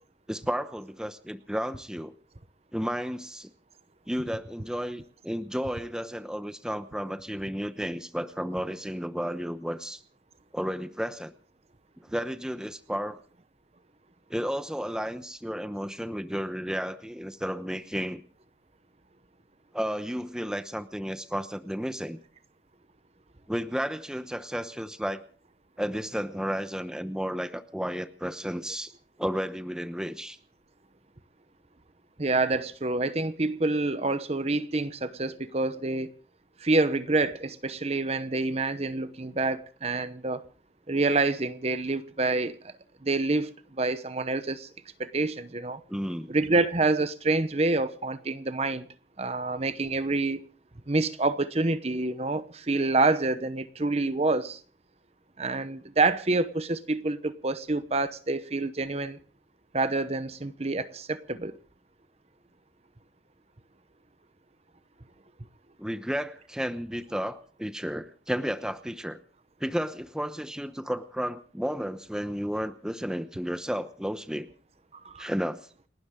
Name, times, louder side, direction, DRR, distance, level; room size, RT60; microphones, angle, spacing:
voice 1, 0.3-2.1 2.7-3.5 4.1-10.0 10.5-11.3 12.1-13.2 14.3-18.2 19.7-22.2 23.5-25.2 25.8-28.9 29.2-30.4 45.9-46.3 65.8-69.2 69.6-74.5 75.2-75.7, equal, 5° right, 0.9 m, -32 dB
voice 2, 32.2-36.1 36.6-40.4 40.9-42.7 43.0-44.7 45.0-45.8 46.3-48.8 49.2-50.4 50.9-54.6 55.4-59.2 59.7-61.5 75.0-75.3, right 2 dB, 35° right, 0.9 m, -27 dB
29.5 x 12.5 x 3.7 m
head